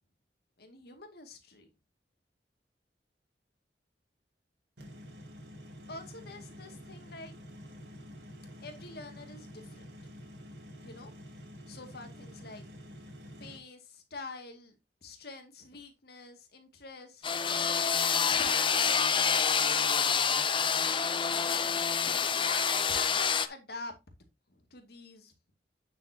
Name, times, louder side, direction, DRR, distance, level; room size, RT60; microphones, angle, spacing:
voice 1, 0.6-1.7 5.9-7.4 8.6-9.8 10.8-11.1 11.7-12.6 13.4-14.8 15.0-17.3 17.7-18.8 19.1-19.8 22.4-23.9 24.5-25.3, left 3 dB, 65° left, 2.3 m, -46 dB
sound 1, 4.8-13.6, equal, 70° right, 3.0 m, -48 dB
sound 2, 17.2-23.5, left 6 dB, 30° left, 0.6 m, -27 dB
9.1 x 7.3 x 2.9 m
head